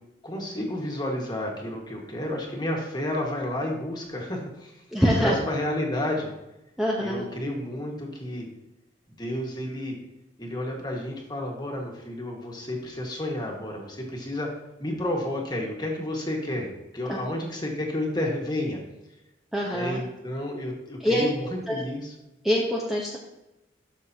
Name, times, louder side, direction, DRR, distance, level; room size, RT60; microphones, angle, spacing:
voice 1, 0.2-6.3 7.0-8.5 9.1-9.9 10.4-14.5 14.8-18.8 19.6-22.1, left 1 dB, 20° left, 0 dB, 1.6 m, -31 dB
voice 2, 4.9-5.4 6.8-7.2 17.1-17.2 19.5-20.0 21.0-21.3 21.7-21.8 22.4-23.2, equal, ahead, -4 dB, 0.8 m, -24 dB
12.5 x 6.7 x 2.8 m, 0.96 s
head